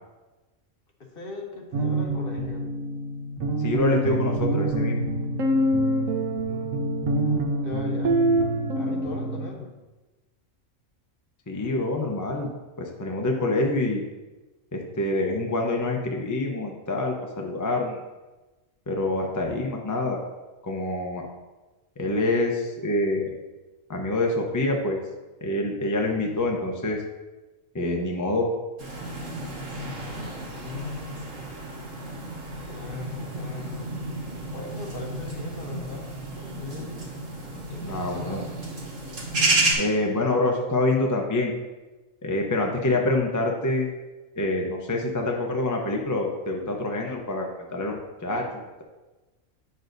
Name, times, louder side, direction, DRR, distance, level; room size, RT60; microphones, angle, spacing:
voice 1, 1.0-2.7 6.4-6.8 7.6-8.2 8.7-9.8 30.5-31.4 32.6-33.9 34.5-37.0 37.7-38.5, left 4 dB, 45° left, 1 dB, 1.1 m, -39 dB
sound 1, 1.7-9.5, right 1 dB, 90° right, 1.2 m, -25 dB
voice 2, 3.6-5.0 11.5-12.5 12.8-14.0 14.7-18.0 18.9-20.2 20.6-21.3 22.0-23.4 23.9-25.0 25.4-27.0 27.7-28.5 37.8-38.4 39.8-41.5 42.2-43.9 44.4-48.8, left 2 dB, 20° left, 1 dB, 0.6 m, -26 dB
sound 2, 28.8-39.7, right 2 dB, 70° right, 2.0 m, -31 dB
9.3 x 6.6 x 2.6 m, 1.2 s
omnidirectional pair, 1.3 m